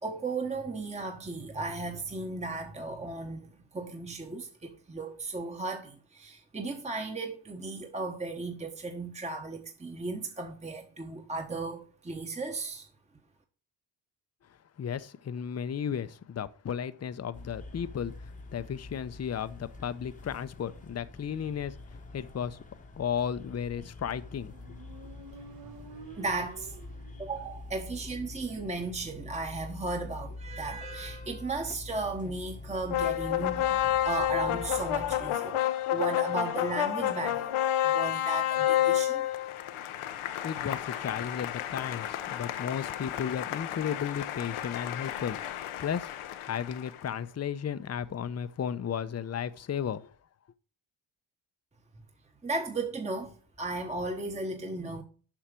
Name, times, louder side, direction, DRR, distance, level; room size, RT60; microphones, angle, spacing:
voice 1, 0.0-12.9 26.1-26.8 27.2-39.3 52.4-55.0, right 3 dB, 15° right, 1.1 m, -35 dB
voice 2, 14.8-18.1 18.5-22.6 23.0-24.5 40.4-45.4 45.8-46.1 46.4-50.1, left 8 dB, 35° left, 0.7 m, -34 dB
sound 1, 17.3-35.3, left 2 dB, 15° left, 1.0 m, -45 dB
Motorcycle, 24.1-27.7, right 4 dB, 45° right, 1.2 m, -50 dB
sound 2, 32.9-47.1, left 12 dB, 90° left, 0.9 m, -30 dB
7.5 x 5.7 x 5.0 m
cardioid pair, 80°, 48 cm